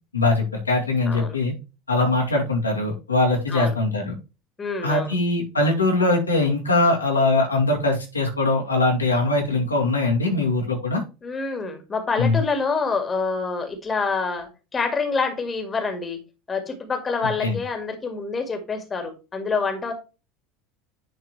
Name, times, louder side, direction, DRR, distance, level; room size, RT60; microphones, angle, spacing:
voice 1, 0.1-1.5 1.9-4.1 4.8-11.0 12.2-12.4 17.4-17.6, left 2 dB, 85° left, 0 dB, 2.3 m, -21 dB
voice 2, 4.6-5.2 11.2-16.2 16.5-19.9, left 4 dB, 20° left, 5 dB, 2.0 m, -27 dB
10.0 x 4.6 x 3.2 m, 0.30 s
figure-of-eight pair, 70°, 0 cm